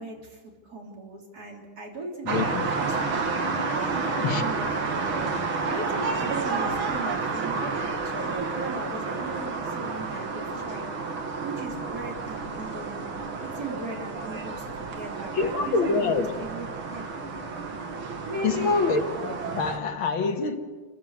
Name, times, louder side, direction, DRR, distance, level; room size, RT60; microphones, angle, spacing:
voice 1, 0.0-2.5 2.8-3.3 3.8-5.4 5.6-11.0 11.4-13.1 13.4-17.0 18.3-18.8, right 2 dB, 45° right, 4.0 m, -38 dB
voice 2, 2.2-2.7 4.2-4.4 15.3-16.3 18.4-20.6, left 4 dB, 75° left, 2.4 m, -26 dB
sound 1, 2.3-19.8, right 4 dB, 80° right, 2.8 m, -30 dB
28.5 x 15.0 x 8.2 m
omnidirectional pair, 2.2 m